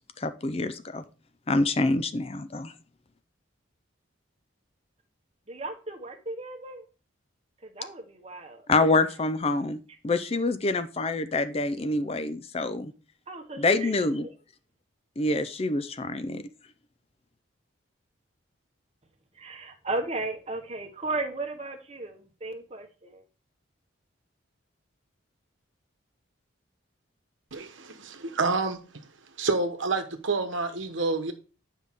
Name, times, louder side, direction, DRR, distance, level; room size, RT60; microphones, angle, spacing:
voice 1, 0.2-1.0 1.5-2.7 8.7-12.9 13.6-14.3 15.2-16.4, left 2 dB, 30° left, 0.4 m, -26 dB
voice 2, 5.5-6.9 7.6-8.6 13.3-13.9 14.2-14.3 19.3-23.2, right 2 dB, 30° right, 1.1 m, -35 dB
voice 3, 27.5-28.8 29.4-31.3, right 3 dB, 70° right, 1.1 m, -28 dB
9.5 x 5.5 x 3.6 m
head